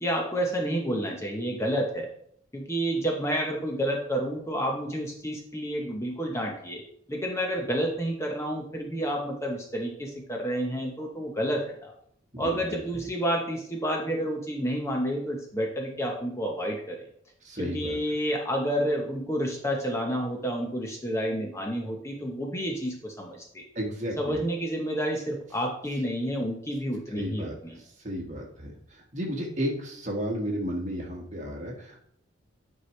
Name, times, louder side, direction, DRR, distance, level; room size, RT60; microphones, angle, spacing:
voice 1, 0.0-2.1 2.5-6.8 7.1-11.9 12.4-17.1 17.6-23.6 24.2-27.8, equal, 15° left, 1 dB, 0.8 m, -30 dB
voice 2, 17.4-18.0 23.7-24.4 27.1-32.0, equal, 35° right, -1 dB, 1.5 m, -33 dB
9.5 x 4.8 x 3.2 m, 0.66 s
head